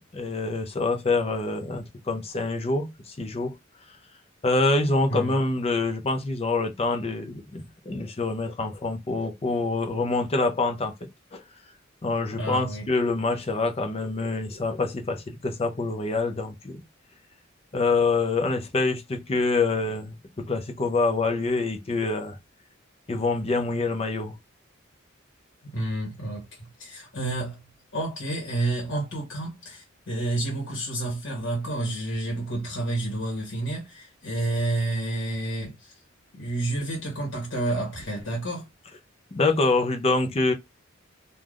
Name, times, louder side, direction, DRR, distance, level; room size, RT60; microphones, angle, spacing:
voice 1, 0.1-3.5 4.4-10.9 11.3-11.4 12.0-16.8 17.7-22.4 23.1-24.4 39.3-40.5, left 3 dB, 30° left, 0.5 m, -26 dB
voice 2, 5.1-5.4 12.3-12.9 25.6-27.6 27.9-35.9 36.3-38.7, right 2 dB, 70° left, 1.1 m, -30 dB
3.3 x 2.3 x 2.4 m
head